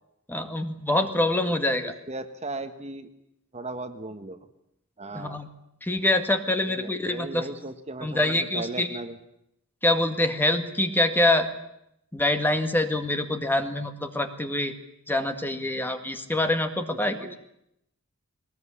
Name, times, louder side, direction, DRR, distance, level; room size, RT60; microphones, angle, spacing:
voice 1, 0.3-2.0 5.1-5.5 5.8-7.5 8.0-9.0 9.8-11.5 12.1-14.7 15.1-17.4, left 1 dB, 10° left, 7 dB, 1.9 m, -25 dB
voice 2, 1.8-3.1 3.5-4.4 5.0-5.4 6.7-9.1 16.9-17.4, right 2 dB, 30° right, 9 dB, 1.5 m, -37 dB
21.0 x 20.0 x 9.9 m, 0.79 s
head